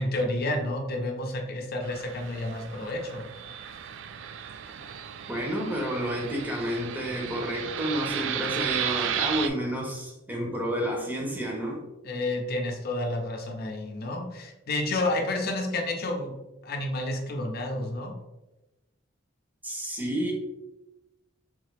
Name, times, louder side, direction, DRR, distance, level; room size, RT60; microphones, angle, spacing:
voice 1, 0.0-3.2 12.0-16.3 16.6-18.1, left 2 dB, 55° left, 3 dB, 0.7 m, -30 dB
Fixed-wing aircraft airplane, 1.8-9.5, right 9 dB, 70° right, 0.3 m, -34 dB
voice 2, 5.3-11.8 19.6-20.3, equal, 10° right, -1 dB, 0.8 m, -30 dB
3.6 x 2.9 x 3.3 m, 0.99 s
head